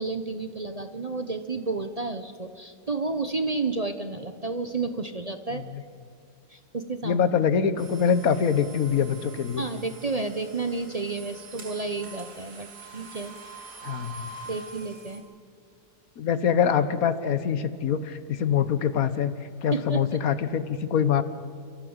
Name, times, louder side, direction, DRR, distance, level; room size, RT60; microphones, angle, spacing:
voice 1, 0.0-5.6 6.5-7.2 9.6-13.3 14.5-15.2 19.7-20.0, right 3 dB, 35° right, 8 dB, 0.7 m, -31 dB
voice 2, 7.0-9.6 13.8-14.3 16.2-19.3 19.6-21.2, left 7 dB, 60° left, 13 dB, 1.4 m, -24 dB
sound 1, 7.8-15.2, right 3 dB, 80° right, 6.4 m, -45 dB
29.5 x 15.0 x 8.0 m, 2.2 s
omnidirectional pair, 1.7 m